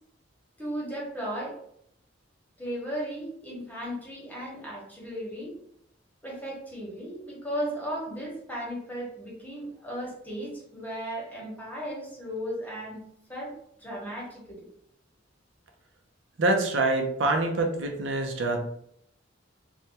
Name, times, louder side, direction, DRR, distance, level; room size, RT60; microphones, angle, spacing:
voice 1, 0.6-1.6 2.6-5.6 6.2-13.0 13.3-13.5 13.8-14.7, equal, 10° left, -4 dB, 1.1 m, -35 dB
voice 2, 16.4-18.6, right 2 dB, 70° right, 2 dB, 0.6 m, -25 dB
3.3 x 2.2 x 2.8 m, 0.70 s
head